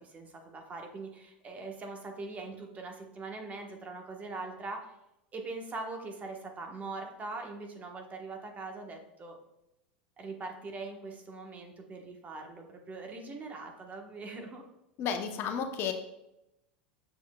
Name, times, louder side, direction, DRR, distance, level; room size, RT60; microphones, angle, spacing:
voice 1, 0.0-4.9 5.3-9.4 10.2-14.7, right 3 dB, 30° right, 3 dB, 1.2 m, -42 dB
voice 2, 15.0-15.9, left 7 dB, 45° left, 6 dB, 0.8 m, -32 dB
6.8 x 6.3 x 2.3 m, 0.87 s
hypercardioid pair, 90°, 5 cm